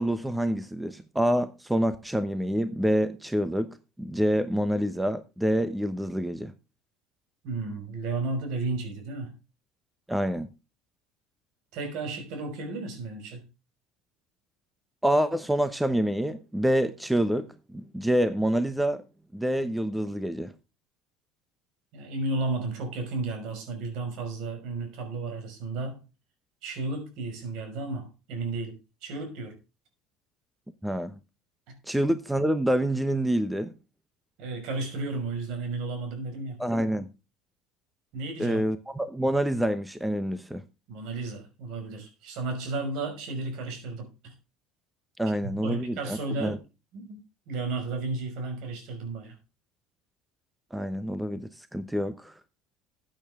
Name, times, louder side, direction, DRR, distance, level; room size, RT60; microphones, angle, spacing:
voice 1, 0.0-6.5 10.1-10.5 15.0-19.0 19.3-20.5 30.8-31.2 31.9-33.7 36.6-37.1 38.4-40.6 45.2-46.6 50.7-52.3, equal, 5° right, 0.9 m, -27 dB
voice 2, 7.4-9.4 11.7-13.4 21.9-26.0 26.6-29.6 31.7-31.8 34.4-36.6 38.1-38.6 40.9-44.4 45.4-46.6 46.9-49.4, right 3 dB, 65° right, 5.6 m, -33 dB
14.0 x 8.9 x 3.6 m
supercardioid pair, 120°, 0 cm